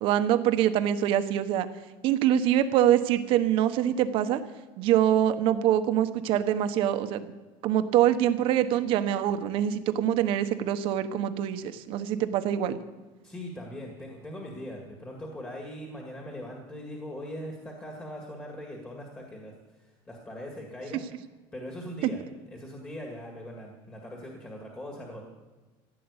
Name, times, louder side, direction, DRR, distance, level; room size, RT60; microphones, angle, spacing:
voice 1, 0.0-1.7 2.0-4.4 4.8-7.3 7.6-12.8, right 11 dB, 50° right, 10 dB, 1.1 m, -24 dB
voice 2, 13.2-21.0 21.5-22.2 22.5-25.2, left 1 dB, 10° left, 0 dB, 1.9 m, -40 dB
15.5 x 7.6 x 9.7 m, 1.2 s
cardioid pair, 165°, 11 cm